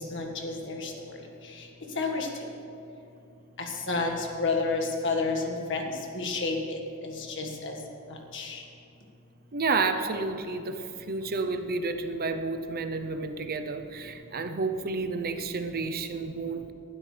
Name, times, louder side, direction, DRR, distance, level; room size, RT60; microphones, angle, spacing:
voice 1, 0.1-0.9 1.9-2.3 3.6-7.8 8.3-8.6, left 3 dB, 60° left, 2 dB, 1.8 m, -30 dB
voice 2, 9.5-16.7, right 3 dB, 45° right, 8 dB, 0.7 m, -30 dB
19.5 x 12.5 x 3.4 m, 2.8 s
head